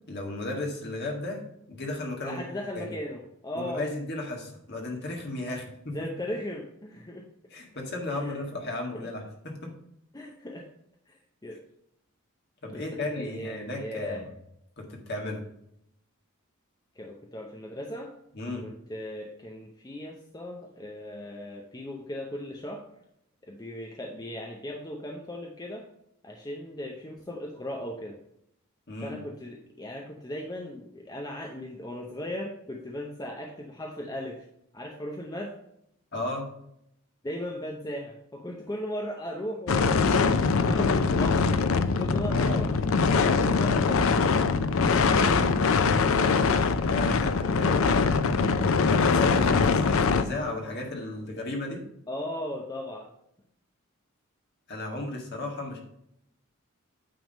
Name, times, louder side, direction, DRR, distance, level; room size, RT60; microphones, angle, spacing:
voice 1, 0.1-1.4 1.7-2.4 2.8-3.0 3.5-6.0 7.5-9.7 12.6-14.3 14.8-15.4 18.3-18.7 28.9-29.2 36.1-36.5 46.8-48.1 48.9-51.8 54.7-55.8, left 2 dB, 50° left, 0 dB, 1.7 m, -34 dB
voice 2, 2.2-3.9 5.5-5.6 5.9-7.3 8.2-8.4 8.9-9.1 10.1-10.7 11.1-11.6 12.7-14.2 17.0-18.1 18.6-22.9 23.4-25.9 26.2-28.2 29.0-34.5 34.7-35.6 37.2-44.2 45.3-45.5 52.1-53.1, left 1 dB, 15° left, 1 dB, 0.6 m, -37 dB
sound 1, 39.7-50.2, left 4 dB, 70° left, 0.5 m, -23 dB
9.2 x 3.5 x 5.2 m, 0.76 s
head